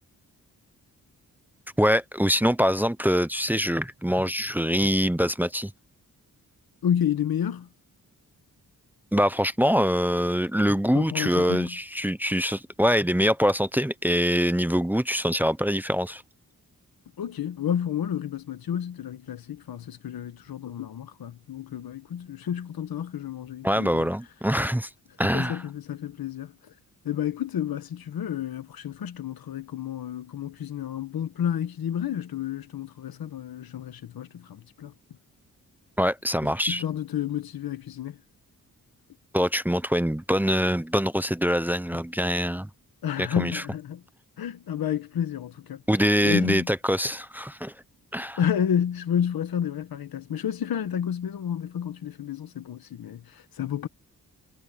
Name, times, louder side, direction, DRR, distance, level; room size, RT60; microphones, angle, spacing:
voice 1, 1.8-5.7 9.1-16.2 23.6-24.9 25.2-25.6 36.0-36.8 39.3-42.7 43.2-43.6 45.9-47.7 48.1-48.4, equal, 5° right, 0.8 m, -24 dB
voice 2, 6.8-7.7 10.9-11.7 17.2-24.0 25.2-26.5 27.0-34.9 36.7-38.2 43.0-44.0 44.4-45.8 46.2-46.7 48.4-53.9, left 9 dB, 90° left, 1.6 m, -30 dB
cardioid pair, 75°, 35 cm